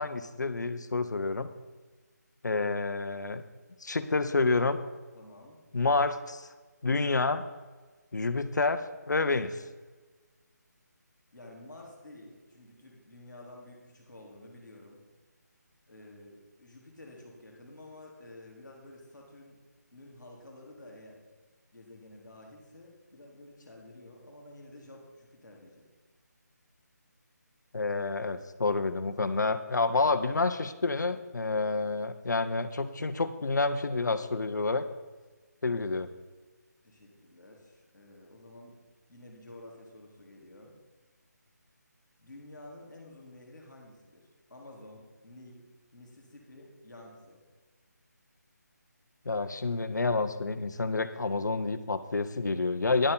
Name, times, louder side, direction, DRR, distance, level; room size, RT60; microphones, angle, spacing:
voice 1, 0.0-1.5 2.4-3.4 3.8-4.8 5.7-6.4 6.8-7.4 8.1-9.5 27.7-34.9 35.6-36.1 49.2-53.1, left 3 dB, 75° left, 10 dB, 0.9 m, -29 dB
voice 2, 5.1-5.6 11.3-15.0 15.9-19.6 19.9-21.2 21.7-25.9 36.8-38.7 39.1-40.7 42.2-45.6 45.9-47.4, left 1 dB, ahead, -30 dB, 0.3 m, -51 dB
10.5 x 6.8 x 5.5 m, 1.3 s
figure-of-eight pair, 175°, 10 cm